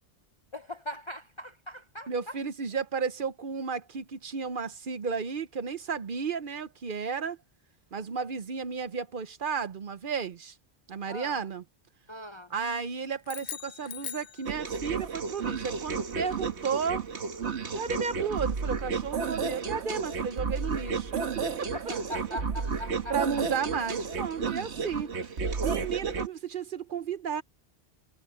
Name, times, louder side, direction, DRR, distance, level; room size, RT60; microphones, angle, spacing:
voice 1, 0.5-2.4 11.1-11.4 12.1-12.5 21.7-23.4 25.2-25.3, left 1 dB, 35° left, 0.5 m, -40 dB
voice 2, 2.1-7.4 7.9-10.5 10.9-11.6 12.5-17.0 17.7-21.2 21.6-21.7 23.1-25.1 25.6-27.4, right 6 dB, 55° right, 0.9 m, -33 dB
sound 1, 13.2-15.0, left 8 dB, 55° left, 1.0 m, -41 dB
sound 2, 14.5-26.3, right 5 dB, 80° right, 1.7 m, -32 dB
omnidirectional pair, 1.1 m